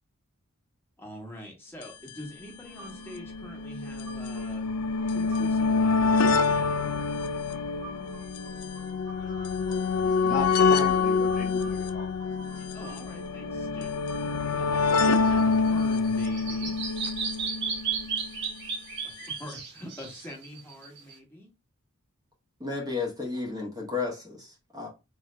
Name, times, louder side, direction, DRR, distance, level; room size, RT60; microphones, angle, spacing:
voice 1, 1.0-4.7 5.1-6.8 12.7-16.8 19.0-19.1 19.4-21.5, left 1 dB, 10° left, 1.2 m, -44 dB
sound 1, 1.8-1.9 2.1-2.2 3.0-18.3 19.3-19.4 19.5-19.6, left 4 dB, 90° left, 0.4 m, -26 dB
sound 2, 2.6-15.2, right 1 dB, 85° right, 1.9 m, -49 dB
voice 2, 10.0-12.1 12.5-12.7, left 3 dB, 35° left, 0.8 m, -36 dB
Bird vocalization bird call bird song, 15.2-21.1, right 6 dB, 50° right, 1.0 m, -34 dB
voice 3, 22.6-24.9, left 4 dB, 15° right, 1.0 m, -33 dB
3.8 x 2.7 x 3.3 m
head